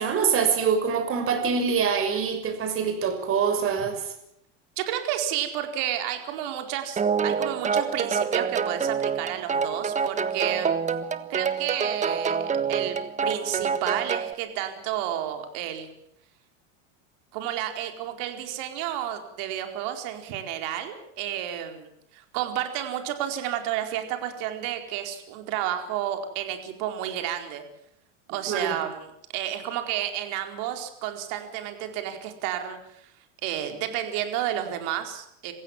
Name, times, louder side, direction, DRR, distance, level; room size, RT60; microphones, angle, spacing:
voice 1, 0.0-4.0 28.5-28.7, right 6 dB, 35° right, 7 dB, 6.2 m, -24 dB
voice 2, 4.8-10.7 11.3-15.9 17.3-27.6 28.3-33.1 33.4-35.5, right 11 dB, 60° right, 6 dB, 4.6 m, -31 dB
sound 1, 7.0-14.3, right 6 dB, 20° right, 1.4 m, -27 dB
27.5 x 16.0 x 7.4 m, 0.74 s
supercardioid pair, 130°, 37 cm